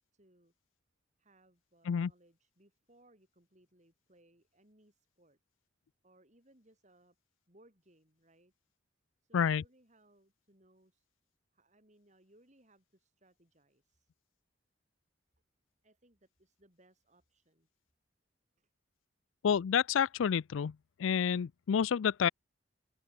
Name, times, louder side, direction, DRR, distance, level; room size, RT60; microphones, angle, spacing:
voice 1, 0.1-0.5 1.2-5.4 6.0-7.2 7.5-8.5 9.2-11.1 11.5-14.1 15.8-17.7 18.6-18.7, right 1 dB, 35° right, 5.7 m, -66 dB
voice 2, 19.4-20.7 21.0-22.3, left 7 dB, 80° left, 0.4 m, -29 dB
open air
head